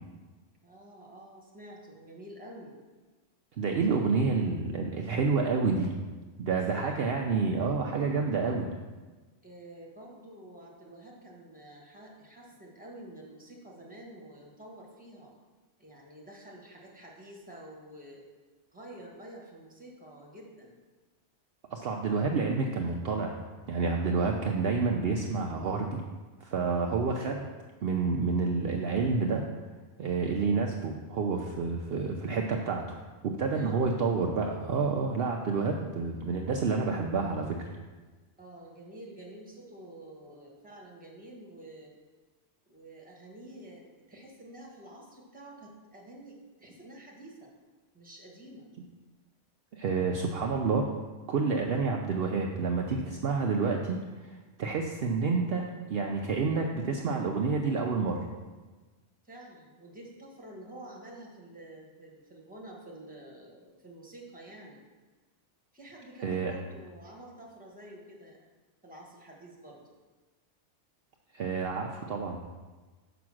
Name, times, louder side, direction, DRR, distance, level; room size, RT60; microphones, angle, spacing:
voice 1, 0.6-2.8 6.5-7.0 9.4-15.3 15.8-18.2 18.7-20.8 33.5-33.8 38.4-41.9 42.7-43.8 44.1-47.5 47.9-48.7 59.3-64.8 65.7-68.4 68.8-69.9, right 1 dB, 5° right, -2 dB, 1.3 m, -49 dB
voice 2, 3.6-5.9 6.4-8.7 21.7-23.4 23.7-26.0 26.4-27.5 27.8-29.4 30.0-33.0 33.2-37.7 49.7-50.9 51.3-58.3 66.2-66.5 71.3-72.4, right 4 dB, 60° right, 2 dB, 0.7 m, -29 dB
6.0 x 5.1 x 6.2 m, 1.3 s
omnidirectional pair, 1.2 m